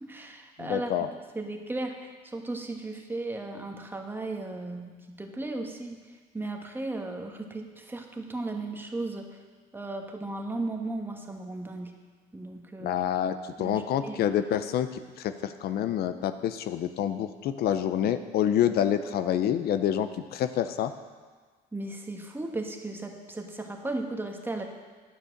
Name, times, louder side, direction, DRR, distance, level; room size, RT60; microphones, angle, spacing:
voice 1, 0.0-1.0 1.3-6.0 6.3-9.3 9.7-11.9 12.3-13.0 13.6-14.3 21.7-24.6, right 2 dB, 10° right, 3 dB, 1.2 m, -36 dB
voice 2, 0.6-1.1 12.8-14.9 15.2-20.9, left 10 dB, 70° left, 10 dB, 0.6 m, -27 dB
10.0 x 7.4 x 6.5 m, 1.4 s
cardioid pair, 110°, 17 cm